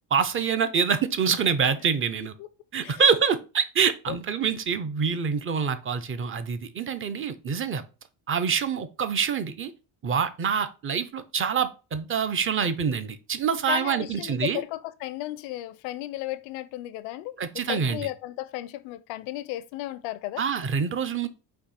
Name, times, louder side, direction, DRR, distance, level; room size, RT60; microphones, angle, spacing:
voice 1, 0.1-2.3 2.7-7.8 8.3-9.7 10.0-14.6 17.4-18.1 20.4-21.3, right 6 dB, 30° right, 0.6 m, -26 dB
voice 2, 13.7-20.4, left 15 dB, 80° left, 0.6 m, -34 dB
4.3 x 2.8 x 4.1 m
supercardioid pair, 95°, 45 cm